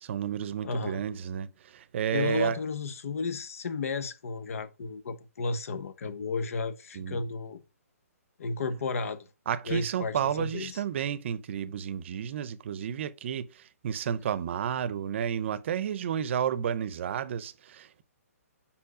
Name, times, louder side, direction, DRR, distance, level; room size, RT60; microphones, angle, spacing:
voice 1, 0.0-2.6 6.9-7.2 9.5-18.0, right 8 dB, 50° right, 0.7 m, -31 dB
voice 2, 0.6-1.0 2.1-7.6 8.4-9.3 9.6-10.8, left 4 dB, 65° left, 1.0 m, -33 dB
5.6 x 4.5 x 4.9 m
hypercardioid pair, 150°, 8 cm